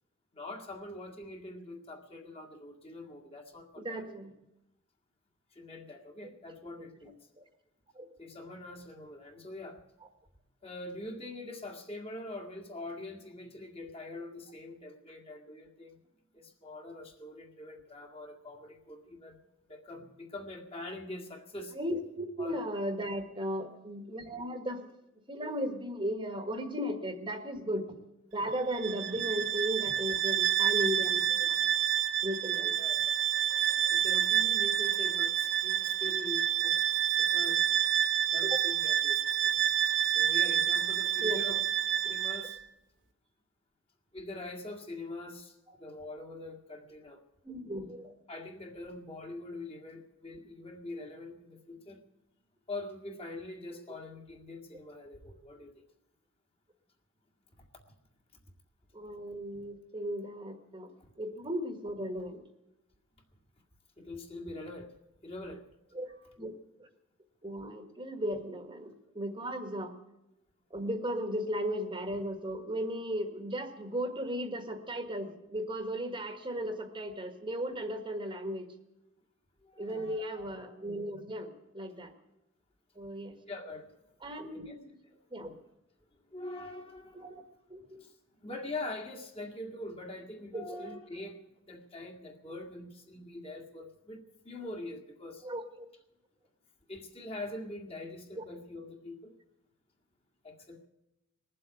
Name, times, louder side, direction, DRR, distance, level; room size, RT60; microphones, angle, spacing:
voice 1, 0.3-4.2 5.5-7.1 8.2-9.8 10.6-16.0 16.3-19.4 19.7-21.8 22.4-22.6 32.8-33.1 33.9-37.6 38.3-39.2 40.1-41.6 42.0-42.6 44.1-47.2 48.3-52.0 52.7-55.8 57.6-57.9 61.0-61.1 64.0-64.9 65.2-65.6 66.1-66.3 79.6-80.4 83.5-83.9 84.5-84.8 85.0-85.6 86.3-87.5 88.0-88.2 88.4-95.5 96.9-99.3 100.4-100.9, left 2 dB, 30° left, 2 dB, 1.9 m, -44 dB
voice 2, 3.8-4.3 7.4-7.5 7.9-8.1 21.7-24.9 25.3-27.9 28.3-31.7 32.2-32.8 38.4-38.6 41.2-41.6 47.4-48.1 58.9-60.9 61.2-62.4 65.9-66.5 66.8-66.9 67.4-70.0 70.7-78.7 79.8-82.1 82.9-83.4 84.2-84.9 85.3-85.5 87.1-87.4 87.7-88.0 90.5-90.8 95.4-95.6 98.4-98.5, equal, 25° right, 6 dB, 1.4 m, -36 dB
Bowed string instrument, 28.7-42.6, right 10 dB, 60° right, 1.0 m, -28 dB
20.0 x 7.7 x 9.0 m, 0.92 s
head